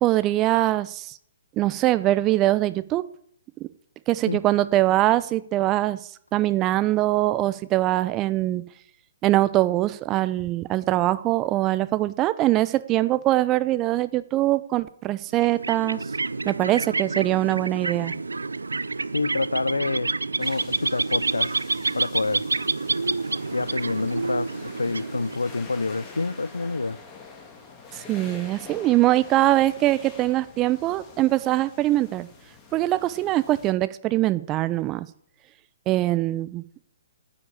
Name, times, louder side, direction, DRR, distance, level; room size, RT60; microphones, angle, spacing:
voice 1, 0.0-1.2 1.6-3.1 3.6-3.7 4.1-6.0 6.3-8.6 9.2-16.0 16.4-18.1 27.9-32.3 32.7-35.1 35.9-36.6, right 15 dB, 25° right, 15 dB, 0.8 m, -22 dB
sound 1, 15.3-25.7, right 3 dB, 85° right, 0.5 m, -28 dB
voice 2, 19.1-20.1 20.4-21.6 21.9-22.5 23.5-27.0, left 3 dB, 85° left, 15 dB, 0.5 m, -27 dB
Ocean waves on small pebbles, 20.4-33.7, left 4 dB, 20° left, 2.8 m, -46 dB
9.8 x 8.6 x 9.8 m, 0.63 s
figure-of-eight pair, 130°, 0 cm